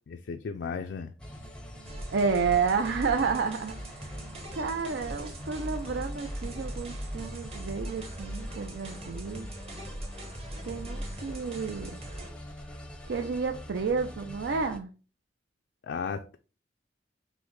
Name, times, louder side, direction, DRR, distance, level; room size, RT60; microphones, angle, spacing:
voice 1, 0.1-1.1 15.8-16.4, left 5 dB, 70° left, 0.4 m, -35 dB
sound 1, 1.2-14.8, left 1 dB, 5° left, 0.5 m, -44 dB
sound 2, 1.8-12.3, right 1 dB, 35° right, 1.0 m, -40 dB
voice 2, 2.1-3.8 4.5-9.5 10.6-12.0 13.1-14.9, right 5 dB, 75° right, 0.4 m, -30 dB
6.1 x 2.1 x 3.1 m
head